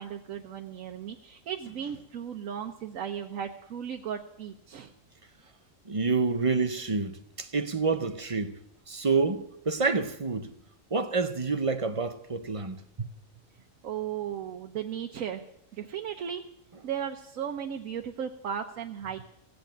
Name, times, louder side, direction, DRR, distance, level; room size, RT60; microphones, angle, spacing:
voice 1, 0.0-4.9 13.8-15.4 15.7-16.4 16.8-19.3, right 8 dB, 90° right, 1.2 m, -36 dB
voice 2, 5.9-8.6 8.9-10.5 10.9-13.1, right 4 dB, 35° right, 0.6 m, -28 dB
16.0 x 8.0 x 9.1 m
omnidirectional pair, 1.4 m